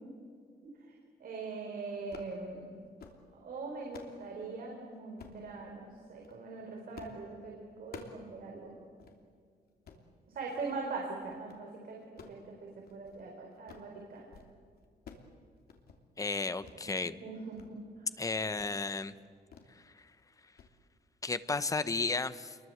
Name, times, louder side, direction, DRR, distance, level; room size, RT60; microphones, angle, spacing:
voice 1, 1.2-2.7 3.3-8.8 10.3-12.0 12.3-14.2 17.2-17.8, right 3 dB, 60° right, 0 dB, 4.5 m, -41 dB
Tissue Box Catching, 2.0-2.4 2.8-3.2 3.6-4.2 5.2-5.5 6.1-6.4 7.0-7.2 7.5-8.3 8.6-8.7 9.0-9.2 9.7-10.1 10.6-10.9 11.2-11.6 12.0-13.3 13.5-13.9 14.2-14.5 14.8-15.3 15.6-16.0 16.6-16.8 17.2-17.7 18.0-18.1 18.5-18.8 19.5-19.7 20.1-20.3 20.6-20.7, left 5 dB, 70° left, 3.1 m, -52 dB
voice 2, 16.2-17.2 18.2-19.1 21.2-22.6, left 3 dB, 20° left, 13 dB, 0.9 m, -33 dB
29.0 x 22.5 x 7.9 m, 2.2 s
wide cardioid pair, 150°, 17 cm